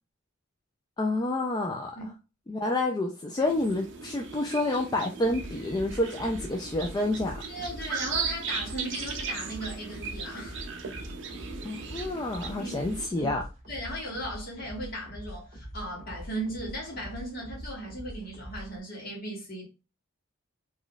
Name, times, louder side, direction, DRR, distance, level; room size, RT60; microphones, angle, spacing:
voice 1, 1.0-1.9 2.5-7.4 11.6-13.4, left 2 dB, 20° left, 0.3 m, -29 dB
sound 1, 3.4-13.1, right 6 dB, 55° right, 0.5 m, -38 dB
sound 2, 5.2-18.8, equal, 35° right, 1.5 m, -43 dB
voice 2, 7.5-10.6 12.5-12.7 13.1-13.4 13.7-19.7, right 1 dB, 45° left, 1.6 m, -37 dB
3.9 x 3.1 x 2.3 m
head